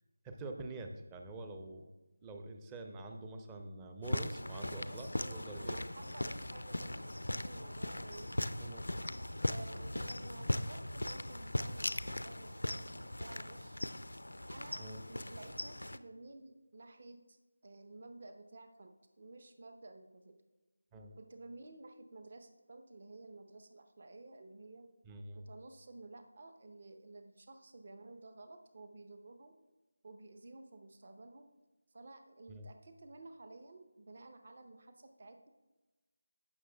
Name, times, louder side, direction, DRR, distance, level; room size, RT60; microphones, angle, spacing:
voice 1, 0.2-1.9 2.2-5.8 8.6-8.9 14.8-15.0 20.9-21.1 25.0-25.5 32.5-32.7, right 2 dB, 10° right, 4 dB, 0.5 m, -46 dB
sound 1, 4.0-16.0, left 1 dB, 85° left, 0.4 m, -39 dB
voice 2, 4.8-8.4 9.4-13.8 14.5-20.4 21.2-24.9 25.3-29.6 30.0-31.5 31.9-35.5, right 2 dB, 45° right, 7 dB, 0.8 m, -53 dB
15.5 x 6.3 x 2.3 m, 1.1 s
figure-of-eight pair, 165°, 0 cm